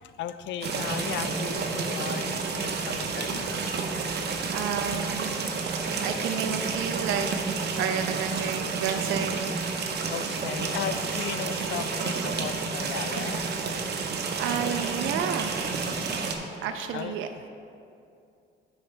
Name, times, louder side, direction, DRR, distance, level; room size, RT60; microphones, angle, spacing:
voice 1, 0.0-3.5 10.1-13.5 16.9-17.2, left 10 dB, 65° left, 12 dB, 0.4 m, -36 dB
sound 1, 0.6-16.3, right 4 dB, 55° right, 0.8 m, -30 dB
voice 2, 4.5-5.3 6.0-7.3 7.8-9.4 14.4-15.6 16.6-17.3, right 8 dB, 85° right, 6 dB, 0.4 m, -30 dB
9.2 x 5.6 x 3.3 m, 2.5 s
cardioid pair, 90°, 20 cm